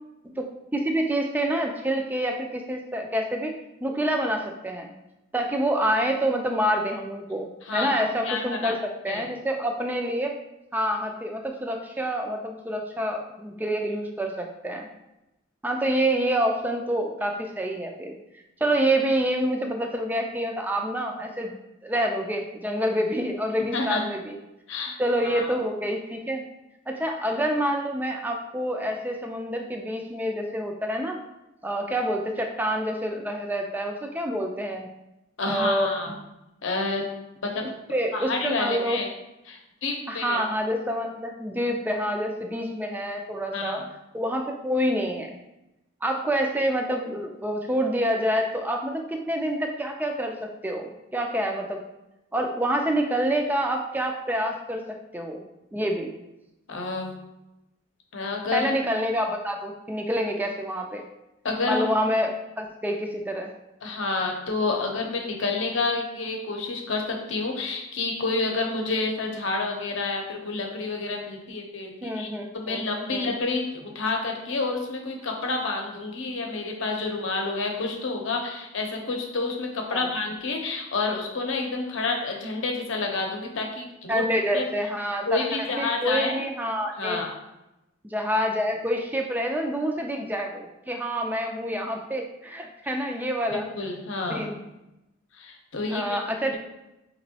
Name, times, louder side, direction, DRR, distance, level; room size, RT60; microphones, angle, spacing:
voice 1, 0.2-3.5 3.8-4.9 5.3-8.8 9.0-10.4 10.7-14.9 15.6-18.1 18.6-24.4 25.0-26.5 26.9-31.2 31.6-34.9 35.4-36.2 37.6-39.0 40.1-43.8 44.1-45.4 46.0-51.8 52.3-55.4 55.7-56.1 58.5-61.0 61.7-63.5 72.0-73.3 79.9-80.1 84.1-85.5 85.8-87.2 88.0-93.7 94.3-94.6 95.9-96.6, equal, 10° right, 2 dB, 0.4 m, -27 dB
voice 2, 7.6-8.7 9.1-9.3 23.7-24.0 24.7-25.5 35.4-36.1 36.6-37.0 37.4-37.6 38.1-39.1 39.5-40.4 43.5-43.8 56.7-57.1 58.1-58.7 61.4-61.9 63.8-72.3 72.5-84.2 84.5-84.7 85.3-86.4 87.0-87.3 93.7-94.5 95.3-96.2, left 3 dB, 65° left, 1 dB, 0.7 m, -29 dB
5.2 x 3.0 x 2.8 m, 0.93 s
head